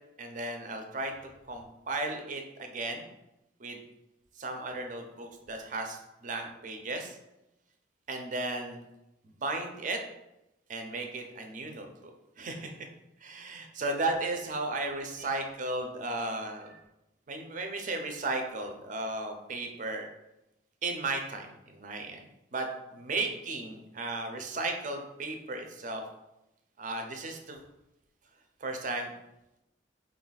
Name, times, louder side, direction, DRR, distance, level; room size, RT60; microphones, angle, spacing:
voice 1, 0.2-1.1 1.5-3.1 3.6-3.8 4.4-7.2 8.1-8.8 9.2-10.0 10.7-12.1 12.4-12.9 13.2-16.8 17.3-20.1 20.8-22.2 22.5-26.0 26.8-27.6 28.6-29.1, right 2 dB, 40° right, 4 dB, 0.5 m, -35 dB
4.4 x 2.3 x 4.0 m, 0.92 s
head